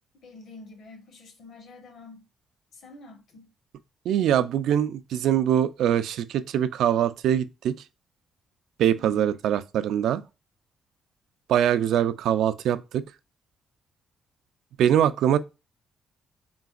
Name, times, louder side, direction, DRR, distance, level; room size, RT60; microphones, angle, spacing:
voice 1, 0.1-2.2 2.7-3.5 9.0-9.4, left 3 dB, 65° left, 1.2 m, -47 dB
voice 2, 4.1-7.7 8.8-10.2 11.5-13.0 14.8-15.4, right 10 dB, 80° right, 0.4 m, -23 dB
4.1 x 3.8 x 2.4 m
cardioid pair, 150°, 0 cm